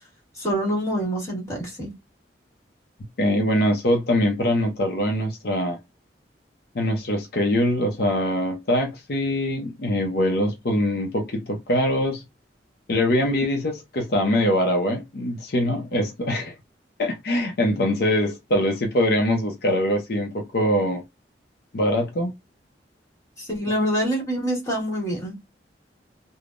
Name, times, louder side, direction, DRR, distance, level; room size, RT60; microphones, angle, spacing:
voice 1, 0.4-1.9 23.4-25.3, equal, 20° left, 1.5 m, -26 dB
voice 2, 3.2-5.8 6.7-12.2 12.9-16.5 17.0-21.0 21.7-22.3, left 1 dB, 60° left, 0.6 m, -23 dB
3.4 x 2.0 x 2.4 m
head